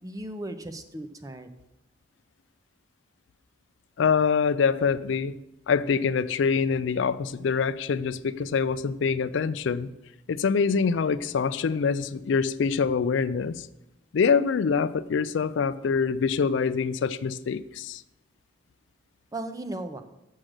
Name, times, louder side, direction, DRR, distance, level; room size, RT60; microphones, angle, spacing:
voice 1, 0.0-1.5 19.3-20.0, right 1 dB, 20° right, 8 dB, 0.6 m, -36 dB
voice 2, 4.0-5.4 5.7-9.9 10.3-13.7 14.1-18.0, left 5 dB, 75° left, 15 dB, 0.4 m, -25 dB
7.4 x 6.4 x 6.4 m, 0.91 s
head